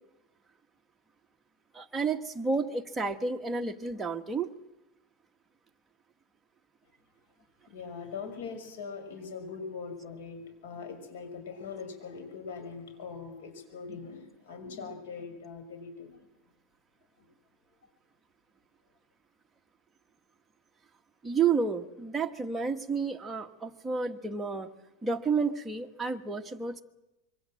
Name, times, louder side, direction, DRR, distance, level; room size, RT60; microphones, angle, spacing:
voice 1, 1.7-4.5 21.2-24.7 25.0-26.8, right 5 dB, 10° right, 3 dB, 1.4 m, -30 dB
voice 2, 7.7-16.3 17.2-17.3, left 5 dB, 80° left, 7 dB, 6.2 m, -42 dB
26.0 x 23.5 x 7.8 m, 0.97 s
supercardioid pair, 150°, 0 cm